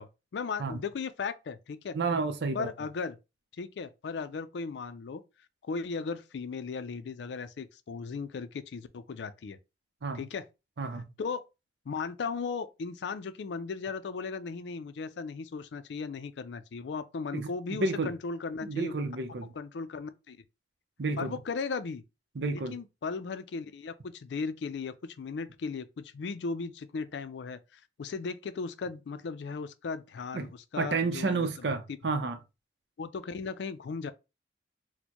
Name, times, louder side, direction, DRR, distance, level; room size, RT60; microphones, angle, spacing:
voice 1, 0.0-2.0 2.5-3.2 3.6-5.2 5.6-9.6 10.1-10.4 11.2-11.4 11.9-18.9 19.6-20.4 21.2-22.0 22.5-31.5 33.0-34.1, left 4 dB, 75° left, 0.4 m, -36 dB
voice 2, 1.9-2.7 10.0-10.2 10.8-11.1 17.3-18.1 18.6-19.5 21.0-21.3 22.3-22.8 30.3-30.5 30.8-32.4, right 3 dB, 75° right, 0.6 m, -31 dB
4.3 x 2.1 x 2.9 m
head